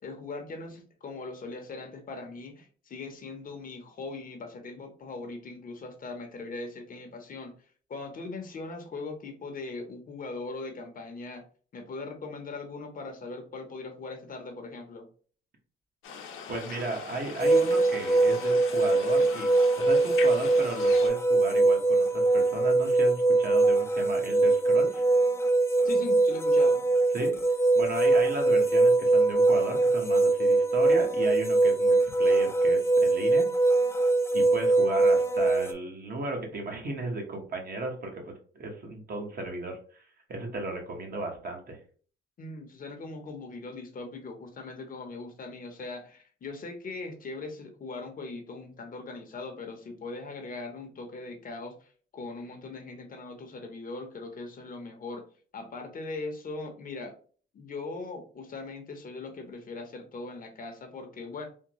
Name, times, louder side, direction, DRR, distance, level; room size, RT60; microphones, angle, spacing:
voice 1, 0.0-7.5 7.9-11.4 11.7-15.1 25.8-26.8 42.4-55.3 55.5-57.2 57.5-61.5, left 3 dB, 45° left, 4 dB, 0.8 m, -40 dB
sound 1, 16.0-21.1, left 6 dB, 90° left, 0.7 m, -41 dB
voice 2, 16.5-19.5 19.7-25.0 27.1-27.3 27.7-33.5 34.3-38.2 38.5-41.8, right 2 dB, 50° right, 2 dB, 1.1 m, -35 dB
sound 2, 17.4-35.7, right 2 dB, 15° left, 0.4 m, -22 dB
3.5 x 2.2 x 3.0 m, 0.43 s
cardioid pair, 90°, 20 cm